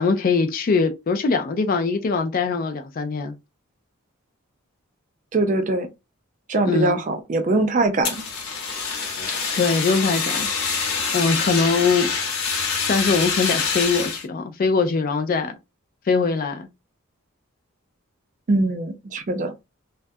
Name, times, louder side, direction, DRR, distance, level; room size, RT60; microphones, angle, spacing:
voice 1, 0.0-3.4 6.6-7.0 9.2-10.9 11.1-12.1 12.9-15.5 16.1-16.7, left 4 dB, 40° left, 0.3 m, -22 dB
voice 2, 5.3-5.9 6.5-8.2 18.5-19.5, right 2 dB, 35° right, 0.3 m, -22 dB
Fire, 8.0-14.2, left 5 dB, 80° left, 0.9 m, -25 dB
2.3 x 2.1 x 2.5 m
head